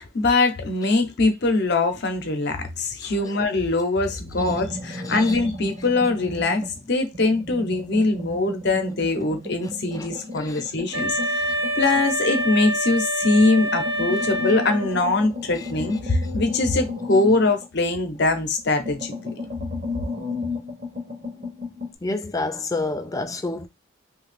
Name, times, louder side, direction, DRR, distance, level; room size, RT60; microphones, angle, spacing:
voice 1, 0.0-11.5 11.8-19.3, left 3 dB, 60° left, 0.7 m, -22 dB
sound 1, 4.3-6.8 7.1-12.7 13.2-18.2 18.6-21.9, left 3 dB, 40° right, 0.9 m, -34 dB
voice 2, 5.0-5.3 10.0-10.1 10.4-10.6 10.9-11.0 22.0-23.7, left 2 dB, 15° left, 0.4 m, -29 dB
Wind instrument woodwind instrument, 10.9-15.1, equal, 80° right, 0.7 m, -26 dB
2.8 x 2.3 x 3.3 m
head